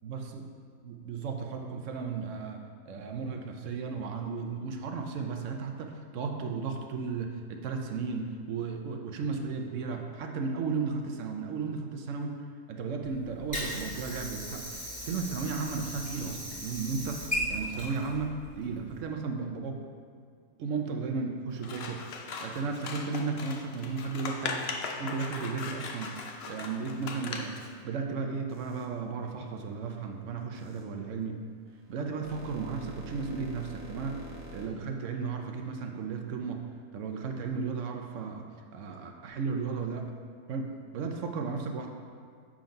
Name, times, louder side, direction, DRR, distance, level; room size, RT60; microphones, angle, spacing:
voice 1, 0.0-0.4 0.8-12.4 12.7-14.7 15.1-17.2 17.5-19.8 20.6-22.0 22.4-24.7 25.0-26.1 26.5-27.5 27.8-31.4 31.9-36.6 36.9-38.5 38.7-40.1 40.5-41.9, right 5 dB, 65° right, 3 dB, 1.0 m, -34 dB
Water / Sink (filling or washing), 13.0-19.0, equal, 5° left, 1.6 m, -37 dB
Scissors, 21.6-27.7, left 4 dB, 60° left, 0.7 m, -39 dB
sound 1, 28.5-28.9 30.5-30.8 31.7-34.7, right 1 dB, 10° right, 0.5 m, -45 dB
7.2 x 3.8 x 5.1 m, 2.1 s
omnidirectional pair, 1.5 m